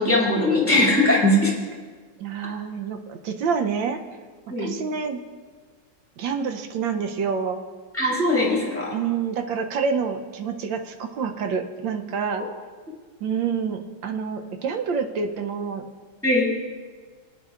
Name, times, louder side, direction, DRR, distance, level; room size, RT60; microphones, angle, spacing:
voice 1, 0.0-1.5 4.5-4.7 7.9-8.9 16.2-16.5, left 1 dB, 5° left, -4 dB, 2.2 m, -20 dB
voice 2, 2.2-4.0 4.6-5.2 6.2-7.6 8.9-12.5 13.2-15.8, right 6 dB, 70° right, 6 dB, 1.4 m, -27 dB
18.5 x 9.5 x 2.5 m, 1.5 s
omnidirectional pair, 2.3 m